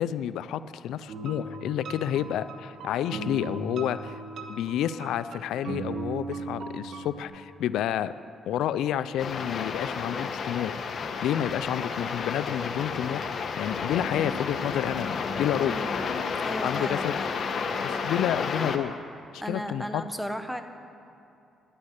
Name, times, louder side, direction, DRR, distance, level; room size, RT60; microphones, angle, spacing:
voice 1, 0.0-4.2 4.5-8.1 8.5-10.7 11.2-13.2 13.6-15.9 16.6-17.2 17.8-19.0 19.3-20.0, left 10 dB, 85° left, 14 dB, 0.3 m, -29 dB
sound 1, 1.1-7.2, right 3 dB, 65° right, 1.3 m, -38 dB
sound 2, 9.2-18.8, left 5 dB, 55° left, 1.0 m, -31 dB
voice 2, 15.6-16.0 16.4-17.0 19.4-20.6, equal, ahead, 8 dB, 1.1 m, -34 dB
9.9 x 9.8 x 9.9 m, 2.7 s
cardioid pair, 90°, 0 cm